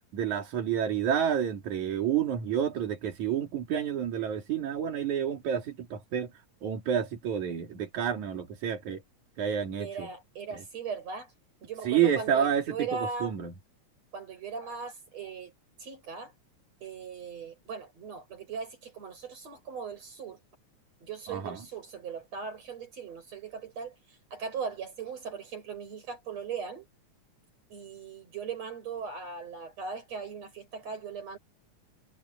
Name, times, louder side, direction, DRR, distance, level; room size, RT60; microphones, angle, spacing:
voice 1, 0.1-6.3 6.6-9.0 9.4-10.1 11.9-12.7 13.2-13.5 21.3-21.6, right 9 dB, 80° right, 4.0 m, -29 dB
voice 2, 9.8-11.3 11.6-13.3 14.1-15.5 15.8-16.3 16.8-20.4 21.0-26.9 27.7-31.4, right 5 dB, 60° right, 7.9 m, -39 dB
omnidirectional pair, 3.4 m